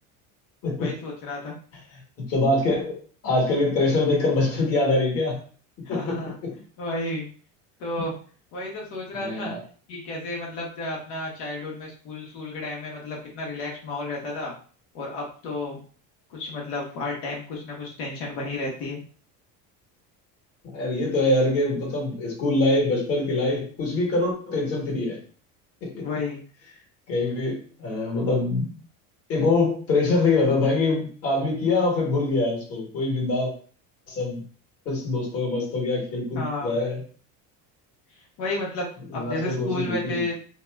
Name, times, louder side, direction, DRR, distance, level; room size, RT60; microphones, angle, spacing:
voice 1, 0.8-1.5 5.8-6.3 6.8-7.3 7.8-8.1 8.5-9.5 9.9-14.5 14.9-15.8 16.3-19.0 26.0-26.4 36.3-36.8 38.4-40.3, left 2 dB, 85° left, -2 dB, 1.1 m, -32 dB
voice 2, 2.3-2.9 3.2-5.4 5.9-6.1 9.1-9.6 20.7-25.2 25.8-26.0 27.1-28.7 29.3-33.5 34.1-34.4 34.8-37.0 39.1-40.2, left 2 dB, 40° left, -3 dB, 1.3 m, -24 dB
2.8 x 2.2 x 3.3 m, 0.42 s
cardioid pair, 160°, 36 cm